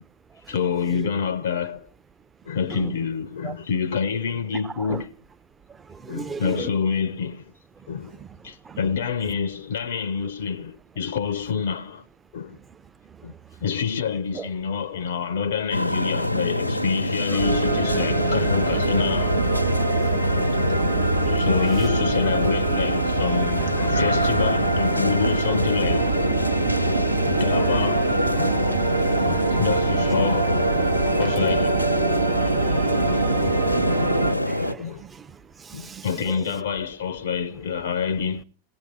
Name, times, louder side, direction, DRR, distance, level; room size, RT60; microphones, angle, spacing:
voice 1, 0.5-1.9 2.5-5.1 6.1-7.5 7.9-8.2 8.4-12.0 12.3-12.6 13.2-13.3 13.6-19.4 21.3-26.2 27.2-30.6 31.1-32.2 32.9-34.1 34.8-35.0 35.7-38.4, left 6 dB, 60° left, 0.7 m, -27 dB
voice 2, 5.9-6.7 8.2-8.3 8.7-8.8 14.3-14.5 17.3-17.4 26.7-27.2 29.2-29.3 33.2-33.4 33.8-35.3 35.6-36.1, right 6 dB, 15° right, 0.8 m, -37 dB
sound 1, 15.7-34.7, left 1 dB, 90° left, 1.0 m, -26 dB
sound 2, 17.4-34.3, right 3 dB, 80° right, 1.9 m, -24 dB
19.0 x 16.5 x 4.4 m
figure-of-eight pair, 90°, 0 cm